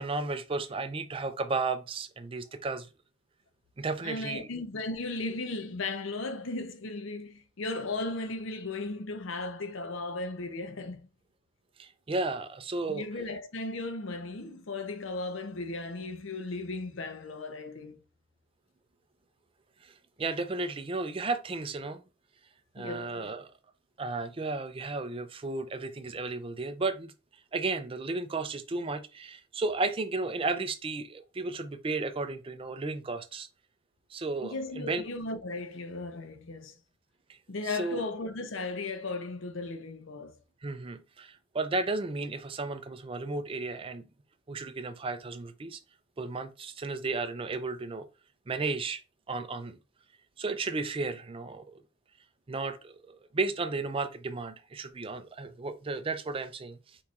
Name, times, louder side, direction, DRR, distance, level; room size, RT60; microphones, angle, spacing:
voice 1, 0.0-2.9 3.8-4.5 11.8-13.1 19.8-22.0 22.7-23.5 24.0-27.1 27.5-33.5 34.1-35.0 37.3-37.4 37.6-38.0 40.6-44.0 44.5-45.8 46.2-48.1 48.5-49.0 49.3-49.8 50.4-51.8 52.5-57.0, right 3 dB, 25° right, 0.4 m, -34 dB
voice 2, 4.0-11.1 12.9-18.0 22.8-23.3 34.4-36.8 37.5-40.4, left 2 dB, 70° left, 0.7 m, -36 dB
4.6 x 4.3 x 2.4 m
head